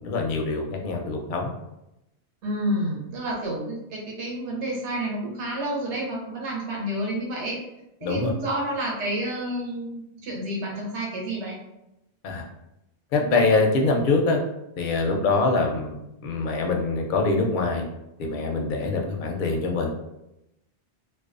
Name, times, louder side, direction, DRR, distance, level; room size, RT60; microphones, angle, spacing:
voice 1, 0.0-1.5 8.0-8.3 12.2-12.4 13.1-14.4 14.8-17.8 18.2-19.9, left 3 dB, 60° left, 1 dB, 0.6 m, -24 dB
voice 2, 2.4-7.6 8.0-11.6, right 1 dB, 80° right, -3 dB, 1.0 m, -29 dB
2.3 x 2.3 x 2.4 m, 0.88 s
omnidirectional pair, 1.2 m